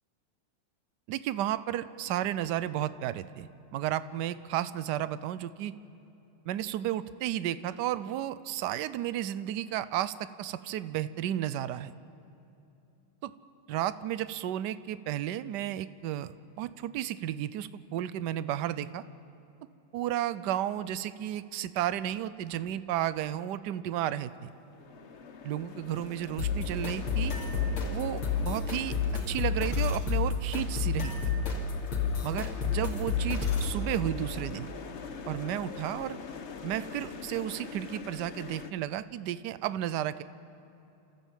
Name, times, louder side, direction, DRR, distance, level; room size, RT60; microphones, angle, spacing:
voice 1, 1.1-5.7 6.5-11.9 13.2-13.3 13.7-19.0 19.9-24.5 25.4-27.3 27.9-28.9 29.3-31.2 32.2-34.7 35.3-36.2 36.6-40.2, right 12 dB, 75° right, 15 dB, 1.0 m, -33 dB
sound 1, 24.3-38.7, left 6 dB, 45° left, 0.9 m, -44 dB
sound 2, 26.4-33.8, left 5 dB, 75° left, 3.4 m, -30 dB
30.0 x 13.5 x 7.4 m, 2.9 s
omnidirectional pair, 2.4 m